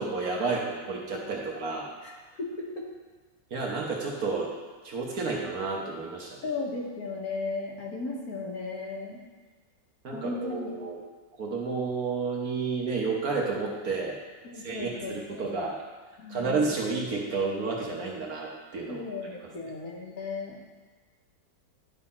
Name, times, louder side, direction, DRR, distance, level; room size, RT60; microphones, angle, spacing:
voice 1, 0.0-1.9 3.5-4.5 4.8-6.4 10.0-11.0 11.4-14.2 14.6-15.8 16.3-19.0 19.4-19.5, right 4 dB, 55° right, -2 dB, 1.3 m, -31 dB
voice 2, 2.4-2.9 6.4-9.2 10.1-10.7 14.4-15.5 16.2-16.6 18.9-20.6, left 3 dB, 55° left, -2 dB, 1.5 m, -35 dB
11.0 x 4.1 x 4.2 m, 1.4 s
omnidirectional pair, 2.0 m